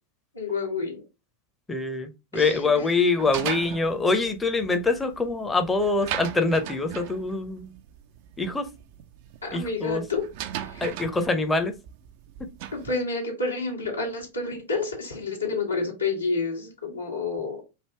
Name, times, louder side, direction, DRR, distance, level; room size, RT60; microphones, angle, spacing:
voice 1, 0.3-1.0 2.3-2.9 9.4-10.2 10.5-10.9 12.7-17.6, left 3 dB, 85° left, 1.4 m, -29 dB
voice 2, 1.7-7.7 8.4-8.7 9.5-10.0 10.8-11.7, left 3 dB, 10° left, 0.7 m, -24 dB
sound 1, 3.2-12.9, right 11 dB, 50° right, 0.4 m, -38 dB
3.3 x 2.6 x 4.4 m
figure-of-eight pair, 90°, 0 cm